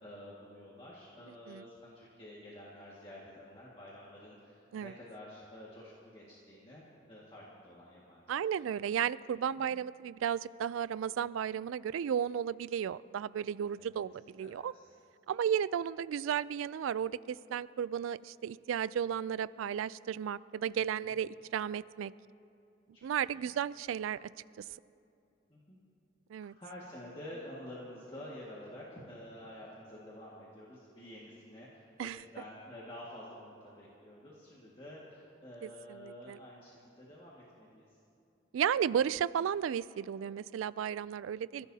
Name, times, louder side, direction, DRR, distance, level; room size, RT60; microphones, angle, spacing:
voice 1, 0.0-8.2 8.5-8.6 9.5-9.8 13.8-13.9 14.4-14.9 20.7-21.1 22.9-23.1 23.4-23.5 25.5-25.8 26.6-38.0 41.6-41.7, left 1 dB, 25° left, -6 dB, 1.8 m, -49 dB
voice 2, 8.3-14.7 15.3-22.1 23.0-24.3 24.6-24.7 26.3-26.5 32.0-32.2 35.6-36.4 38.5-41.7, right 8 dB, 85° right, 17 dB, 0.3 m, -34 dB
29.5 x 15.5 x 2.8 m, 2.7 s
head